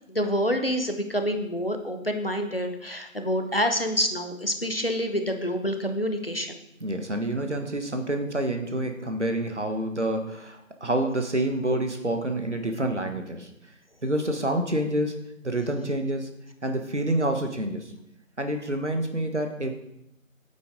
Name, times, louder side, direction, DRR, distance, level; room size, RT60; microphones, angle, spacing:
voice 1, 0.1-6.6, equal, 45° left, 6 dB, 1.0 m, -27 dB
voice 2, 6.8-13.5 14.0-16.3 16.6-17.9 18.4-19.7, right 1 dB, 55° right, 5 dB, 1.5 m, -28 dB
9.8 x 8.3 x 3.8 m, 0.81 s
figure-of-eight pair, 170°, 41 cm